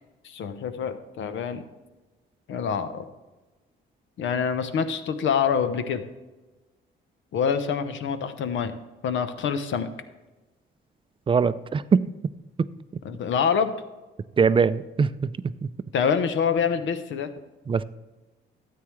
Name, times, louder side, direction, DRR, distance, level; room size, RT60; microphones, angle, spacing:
voice 1, 0.2-1.6 2.5-3.1 4.2-6.0 7.3-8.8 9.0-9.9 13.0-13.7 15.9-17.3, left 7 dB, 75° left, 10 dB, 0.9 m, -26 dB
voice 2, 11.3-12.1 14.4-15.7 17.7-17.8, right 5 dB, 25° right, 15 dB, 0.4 m, -22 dB
13.0 x 8.8 x 3.2 m, 1.1 s
cardioid pair, 90°, 20 cm